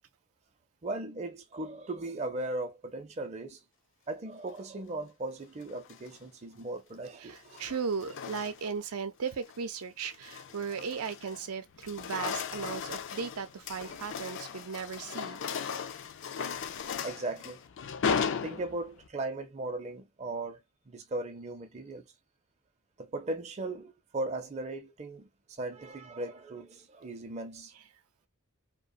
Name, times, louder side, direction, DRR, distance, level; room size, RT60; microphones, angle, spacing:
voice 1, 0.8-3.6 4.1-7.6 13.7-13.9 17.0-17.6 18.4-22.0 23.0-27.7, right 2 dB, 30° right, 0.5 m, -38 dB
sound 1, 5.7-6.2 7.3-8.9 9.3-9.6 10.0-11.5 11.7-19.1, left 6 dB, 55° left, 0.4 m, -36 dB
voice 2, 7.2-15.4, right 6 dB, 80° right, 0.5 m, -36 dB
2.8 x 2.1 x 2.5 m
head